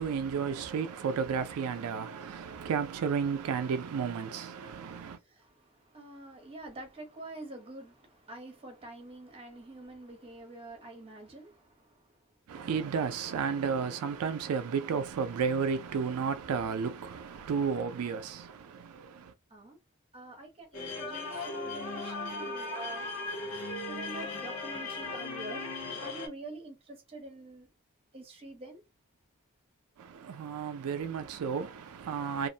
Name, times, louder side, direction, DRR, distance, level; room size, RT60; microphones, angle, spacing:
voice 1, 0.0-5.2 12.5-19.3 30.0-32.5, right 6 dB, 80° right, 0.4 m, -32 dB
voice 2, 5.2-12.3 19.5-19.8 20.1-23.1 23.9-25.7 26.0-27.7 28.1-28.8, right 2 dB, 25° right, 0.9 m, -46 dB
sound 1, 20.7-26.3, left 3 dB, 90° left, 0.8 m, -37 dB
2.4 x 2.1 x 2.6 m
head